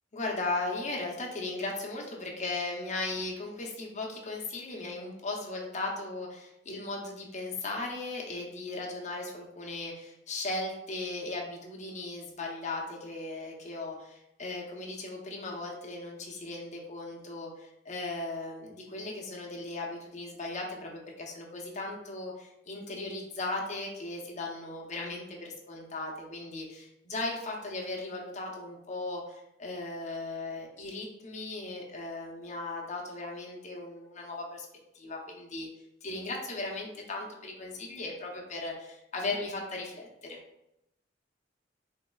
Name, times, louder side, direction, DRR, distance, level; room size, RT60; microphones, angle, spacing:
voice 1, 0.1-34.7 34.9-35.7 36.0-40.4, left 2 dB, 40° left, -1 dB, 0.7 m, -37 dB
3.4 x 3.1 x 2.3 m, 0.85 s
head